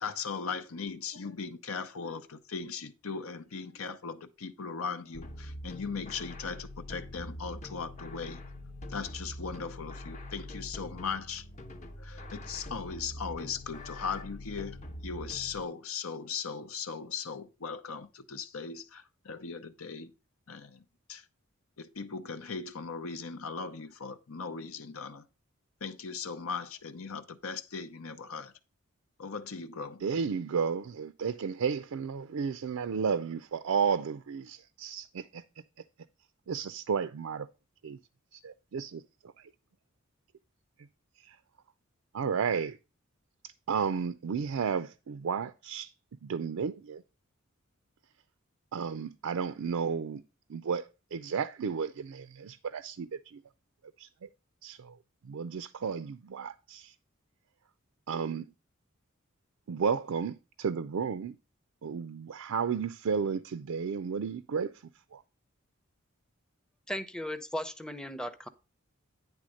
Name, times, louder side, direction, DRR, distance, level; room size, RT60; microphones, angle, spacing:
voice 1, 0.0-8.4 8.9-11.4 12.0-14.8 15.0-20.1 20.5-20.8 21.1-21.2 21.8-25.2 25.8-28.5 29.2-30.0, left 5 dB, 85° left, 0.8 m, -38 dB
sound 1, 5.1-15.6, left 1 dB, 35° left, 0.8 m, -44 dB
voice 2, 30.0-35.4 36.5-37.5 37.8-38.0 38.3-39.0 39.4-39.5 41.2-41.4 42.1-42.8 43.7-45.9 46.2-47.0 48.7-50.2 50.5-53.4 54.0-54.3 54.6-55.0 55.2-56.9 58.1-58.5 59.7-61.4 61.8-64.7 65.1-65.2, right 6 dB, 85° right, 0.4 m, -33 dB
voice 3, 66.9-68.5, equal, 5° left, 0.6 m, -36 dB
9.9 x 3.5 x 6.3 m
head